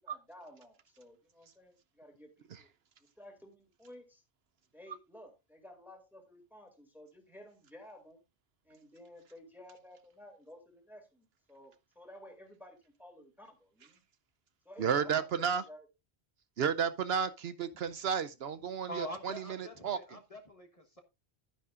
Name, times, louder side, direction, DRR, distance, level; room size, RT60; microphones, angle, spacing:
voice 1, 0.0-2.7 3.2-4.2 4.7-8.2 8.6-14.0 14.6-15.9, left 1 dB, ahead, 2.3 m, -54 dB
voice 2, 14.8-15.6 16.6-19.3 19.6-20.0, right 7 dB, 70° right, 0.9 m, -32 dB
voice 3, 18.9-21.0, left 1 dB, 35° left, 1.4 m, -44 dB
11.5 x 9.9 x 2.5 m
omnidirectional pair, 1.1 m